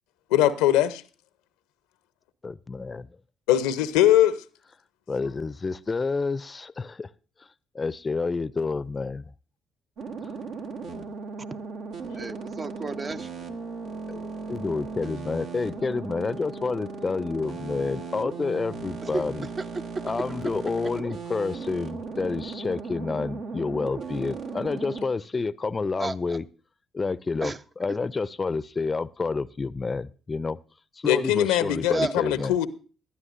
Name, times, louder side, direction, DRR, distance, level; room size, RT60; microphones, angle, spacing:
voice 1, 0.3-1.0 3.5-4.4 12.2-12.3 31.1-32.7, left 12 dB, 80° left, 0.7 m, -21 dB
voice 2, 2.4-3.1 5.1-7.1 7.7-9.3 14.1-19.5 20.0-26.5 26.9-30.6 31.0-32.5, left 4 dB, 30° left, 0.5 m, -29 dB
sound 1, 10.0-25.1, right 4 dB, 70° right, 1.3 m, -37 dB
voice 3, 12.1-13.3 19.1-19.2 26.0-26.1 27.4-27.6 31.9-32.1, right 3 dB, 35° right, 0.7 m, -31 dB
19.0 x 12.5 x 2.6 m
hypercardioid pair, 50°, 0 cm